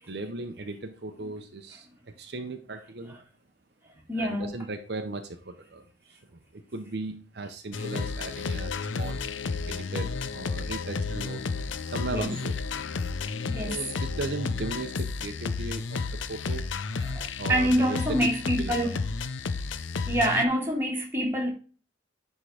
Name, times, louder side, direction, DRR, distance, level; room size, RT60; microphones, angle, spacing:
voice 1, 0.1-3.2 4.2-9.2 9.7-11.4 11.9-12.5 13.7-16.6 17.4-18.3 18.6-18.9, right 2 dB, 55° right, 0.7 m, -37 dB
voice 2, 4.1-4.5 7.8-7.9 12.1-12.4 13.4-13.8 17.0-19.0 20.1-21.5, equal, 10° right, 1.9 m, -26 dB
sound 1, 7.7-20.5, left 4 dB, 80° left, 0.6 m, -32 dB
10.0 x 3.7 x 4.9 m
head